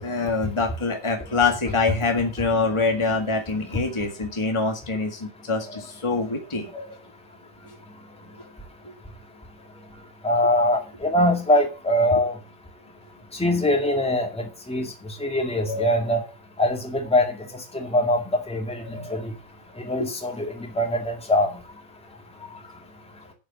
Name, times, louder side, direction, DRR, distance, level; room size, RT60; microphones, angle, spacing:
voice 1, 0.0-6.7 8.9-9.0 18.9-19.1 20.0-20.1, left 3 dB, 20° left, 3 dB, 1.9 m, -25 dB
voice 2, 10.2-12.3 13.4-14.9 15.2-16.2 16.6-17.3 17.7-18.2 18.5-19.3 19.8-21.5, left 1 dB, 5° left, 2 dB, 2.1 m, -22 dB
8.7 x 6.9 x 6.9 m, 0.32 s
omnidirectional pair, 1.4 m